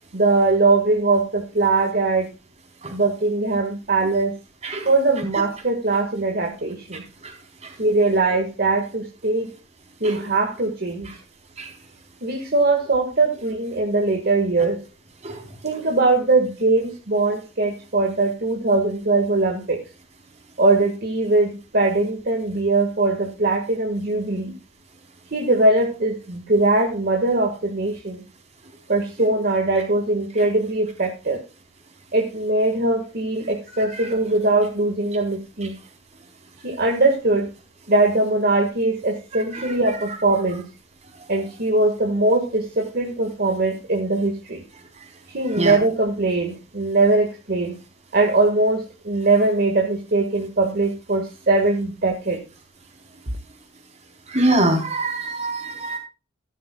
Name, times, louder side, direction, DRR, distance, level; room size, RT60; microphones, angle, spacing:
voice 1, 0.1-2.3 2.9-4.3 4.8-7.0 7.8-9.5 10.0-11.1 12.2-14.8 15.6-19.8 20.6-24.5 25.3-28.2 28.9-31.4 32.1-35.8 36.6-37.5 37.9-40.7 41.3-44.6 45.3-47.8 48.1-52.4, right 2 dB, 50° right, 2 dB, 1.8 m, -21 dB
voice 2, 54.3-56.0, right 1 dB, 35° right, 2 dB, 4.0 m, -23 dB
14.0 x 12.0 x 2.3 m, 0.31 s
head